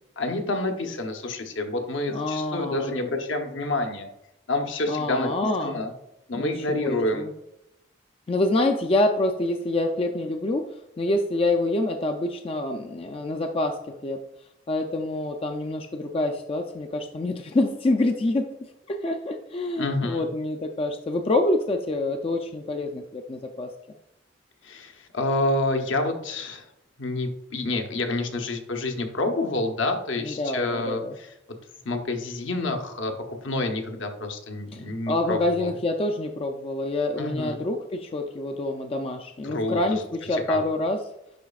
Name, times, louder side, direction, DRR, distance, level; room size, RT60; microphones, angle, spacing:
voice 1, 0.2-4.1 4.5-5.9 6.3-7.3 19.8-20.2 24.6-26.6 27.0-31.3 31.8-35.7 37.2-37.6 39.4-40.0 40.3-40.6, left 2 dB, 75° left, 4 dB, 0.9 m, -28 dB
voice 2, 2.1-3.0 4.9-5.8 6.3-7.3 8.3-10.7 11.0-14.2 14.7-23.7 30.2-31.2 34.7-41.0, left 2 dB, 30° left, 4 dB, 0.3 m, -26 dB
10.5 x 4.0 x 2.4 m, 0.85 s
head